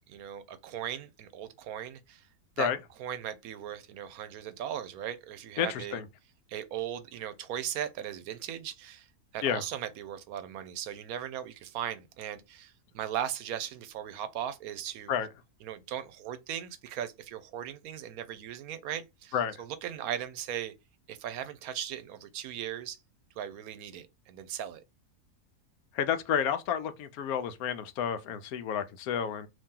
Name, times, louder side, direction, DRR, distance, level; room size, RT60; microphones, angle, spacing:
voice 1, 0.0-2.3 2.6-2.7 3.0-6.0 6.5-9.1 9.3-15.1 15.6-20.7 21.1-23.0 23.4-24.8, right 10 dB, 80° right, 1.0 m, -38 dB
voice 2, 5.6-6.0 9.4-9.6 15.1-15.3 19.3-19.5 25.9-29.5, left 8 dB, 80° left, 1.1 m, -30 dB
2.8 x 2.8 x 3.6 m
omnidirectional pair, 1.5 m